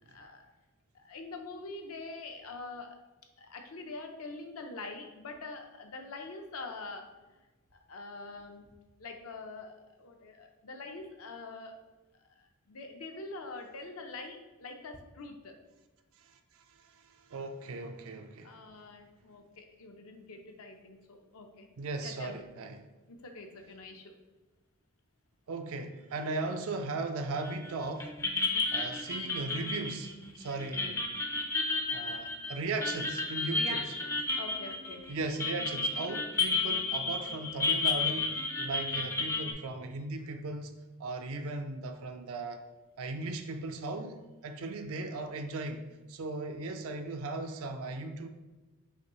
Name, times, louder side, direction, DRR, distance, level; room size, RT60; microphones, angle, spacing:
voice 1, 0.1-0.4 0.9-3.0 3.4-7.1 7.9-8.7 9.0-11.8 12.4-15.5 18.4-21.7 22.0-22.4 23.1-24.1 33.5-35.1, left 3 dB, 75° left, 4 dB, 0.6 m, -44 dB
voice 2, 16.2-18.6 21.8-22.8 25.5-28.1 28.7-31.1 31.9-33.9 35.1-40.7 41.0-42.6 43.0-44.2 44.4-48.3, right 3 dB, 65° right, 6 dB, 0.4 m, -37 dB
sound 1, 27.4-27.7 28.0-39.5, left 3 dB, 10° left, 0.4 m, -32 dB
5.7 x 2.6 x 2.9 m, 1.2 s
head